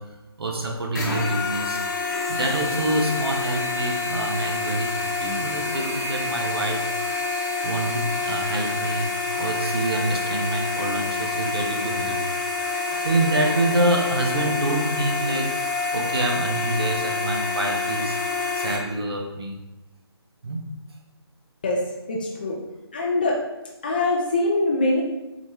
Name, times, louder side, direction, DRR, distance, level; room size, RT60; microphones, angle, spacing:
voice 1, 0.0-1.8 2.3-6.8 7.6-9.1 9.3-12.2 12.7-15.5 15.9-18.2 18.5-19.6 20.4-20.7 22.4-22.5, right 1 dB, 65° right, 2 dB, 0.9 m, -26 dB
sound 1, 0.9-18.8, left 3 dB, 45° left, 0.9 m, -27 dB
voice 2, 22.1-22.6 22.9-23.4 23.8-25.0, left 2 dB, 20° left, -2 dB, 0.4 m, -23 dB
4.1 x 2.9 x 3.4 m, 1.0 s
figure-of-eight pair, 155°, 14 cm